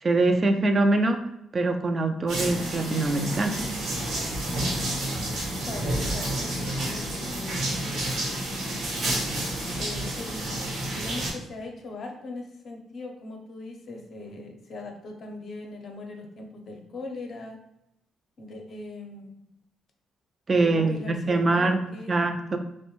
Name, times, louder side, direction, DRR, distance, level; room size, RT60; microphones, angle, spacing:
voice 1, 0.0-1.2 1.5-3.6 20.5-21.8 22.1-22.6, right 2 dB, 35° right, 6 dB, 0.3 m, -23 dB
sound 1, 2.3-11.3, right 1 dB, 75° right, 0.9 m, -30 dB
voice 2, 5.7-8.8 9.8-10.5 10.9-17.6 18.4-19.4 20.5-22.1, left 2 dB, 55° left, 2 dB, 0.6 m, -40 dB
2.6 x 2.1 x 2.9 m, 0.82 s
cardioid pair, 90°, 0 cm